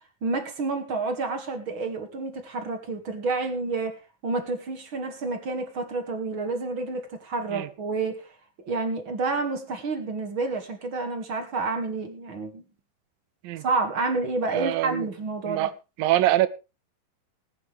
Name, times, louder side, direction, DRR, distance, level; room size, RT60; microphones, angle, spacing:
voice 1, 0.2-8.3 8.6-12.6 13.6-15.7, right 3 dB, 40° right, 5 dB, 2.3 m, -29 dB
voice 2, 14.5-15.1 15.5-15.7 16.0-16.5, right 14 dB, 80° right, 14 dB, 2.5 m, -24 dB
20.0 x 9.9 x 3.4 m, 0.30 s
omnidirectional pair, 4.3 m